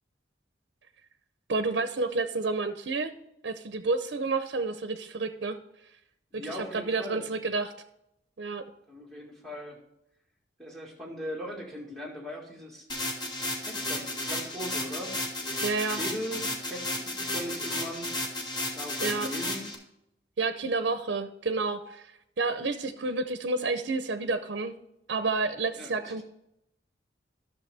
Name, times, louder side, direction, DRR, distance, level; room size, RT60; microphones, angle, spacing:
voice 1, 1.5-3.1 3.4-5.6 6.5-7.7 8.4-8.6 15.6-16.0 19.0-19.3 20.4-22.1 22.4-24.7 25.1-26.2, right 3 dB, 75° right, 9 dB, 0.6 m, -30 dB
voice 2, 6.3-7.3 8.9-9.8 10.6-12.9 13.6-15.6 16.0-18.1 18.8-19.7 25.8-26.2, equal, ahead, -4 dB, 1.9 m, -39 dB
sound 1, 12.9-19.7, left 1 dB, 25° left, 1.1 m, -33 dB
11.5 x 6.5 x 3.3 m, 0.81 s
head